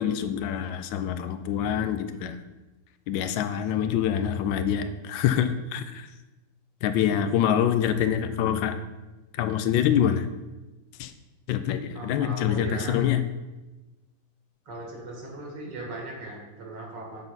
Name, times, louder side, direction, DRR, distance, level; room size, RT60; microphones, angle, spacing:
voice 1, 0.0-2.4 3.1-6.1 6.8-8.7 9.4-10.3 11.0-11.1 11.5-13.2, left 9 dB, 85° left, 10 dB, 1.3 m, -25 dB
voice 2, 11.9-13.1 14.7-17.2, right 1 dB, 70° right, -1 dB, 2.2 m, -38 dB
7.3 x 4.0 x 5.2 m, 1.1 s
omnidirectional pair, 2.0 m